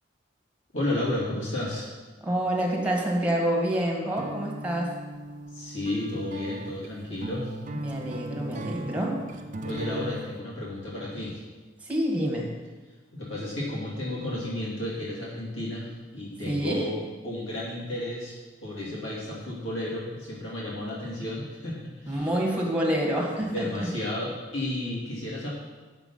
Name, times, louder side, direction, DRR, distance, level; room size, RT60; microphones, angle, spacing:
voice 1, 0.7-1.9 5.5-7.8 9.6-11.4 13.1-17.0 17.2-18.3 18.6-22.3 23.5-25.5, left 1 dB, 80° left, -6 dB, 2.7 m, -32 dB
voice 2, 2.2-4.9 7.7-9.2 11.8-12.5 16.5-16.9 22.1-23.9, right 1 dB, 10° right, -2 dB, 1.9 m, -27 dB
sound 1, 4.2-10.3, right 1 dB, 40° right, 0.7 m, -38 dB
8.7 x 7.3 x 5.7 m, 1.3 s
head